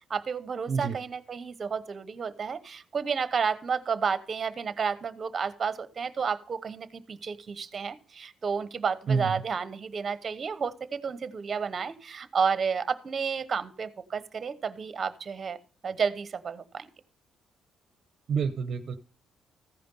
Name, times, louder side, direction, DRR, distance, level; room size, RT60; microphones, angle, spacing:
voice 1, 0.1-16.9, right 6 dB, 40° right, 13 dB, 1.0 m, -31 dB
voice 2, 18.3-19.0, right 5 dB, 60° right, 10 dB, 0.7 m, -28 dB
14.5 x 5.2 x 5.4 m, 0.40 s
cardioid pair, 90°, 0 cm